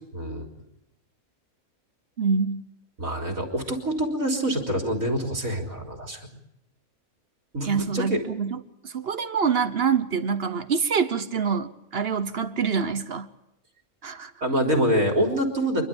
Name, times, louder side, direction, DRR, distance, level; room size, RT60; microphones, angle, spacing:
voice 1, 0.1-0.5 3.0-6.2 7.5-8.2 14.4-15.8, equal, 70° right, 2 dB, 3.9 m, -25 dB
voice 2, 2.2-2.7 7.6-13.3 14.0-14.3, right 6 dB, 50° right, 12 dB, 1.1 m, -26 dB
27.5 x 12.0 x 8.8 m, 0.86 s
omnidirectional pair, 1.5 m